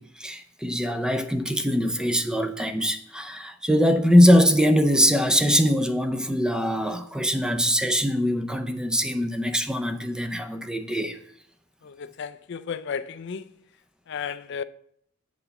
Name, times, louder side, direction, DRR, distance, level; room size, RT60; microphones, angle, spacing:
voice 1, 0.0-11.2, equal, 5° right, 0.5 m, -22 dB
voice 2, 11.8-13.5 14.1-14.6, left 6 dB, 60° left, 0.4 m, -33 dB
7.8 x 4.1 x 6.9 m
head